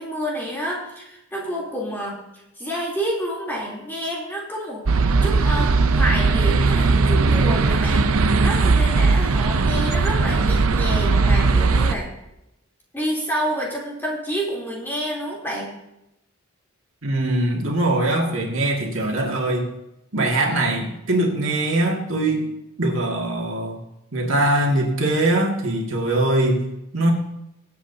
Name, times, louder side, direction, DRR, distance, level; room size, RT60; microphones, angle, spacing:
voice 1, 0.0-2.2 2.6-4.8 5.2-8.1 8.4-12.1 12.9-15.7, equal, 10° left, -5 dB, 3.2 m, -28 dB
sound 1, 4.9-11.9, right 3 dB, 85° right, 0.6 m, -18 dB
voice 2, 17.0-19.7 20.1-22.5 22.8-23.8 24.1-26.6 26.9-27.1, right 1 dB, 70° right, 0 dB, 2.1 m, -22 dB
23.5 x 8.2 x 2.8 m, 0.87 s
head